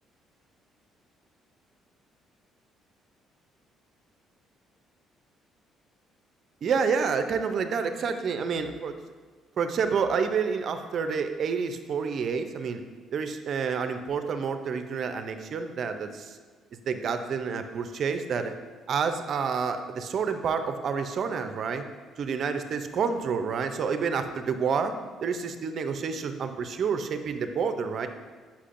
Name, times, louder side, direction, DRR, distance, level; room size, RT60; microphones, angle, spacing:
voice 1, 6.6-9.0 9.6-12.8 13.1-16.4 16.9-18.6 18.9-21.8 22.2-28.1, right 6 dB, 55° right, 8 dB, 0.5 m, -29 dB
8.3 x 5.8 x 2.5 m, 1.5 s
cardioid pair, 100°, 0 cm